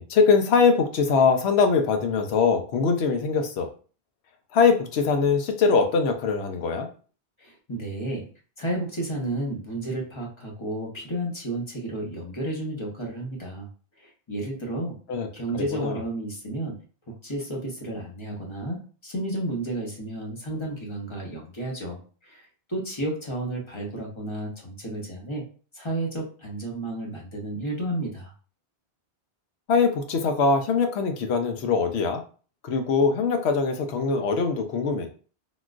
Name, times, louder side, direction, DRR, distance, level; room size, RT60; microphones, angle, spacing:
voice 1, 0.0-3.7 4.5-6.9 15.1-15.3 15.5-16.0 29.7-32.2 32.6-35.1, left 5 dB, 85° left, 6 dB, 0.9 m, -22 dB
voice 2, 7.4-8.3 8.6-13.7 14.0-15.0 15.3-16.8 17.1-25.4 25.7-28.3, right 1 dB, 30° left, -2 dB, 0.9 m, -32 dB
3.7 x 2.4 x 2.4 m, 0.39 s
omnidirectional pair, 1.1 m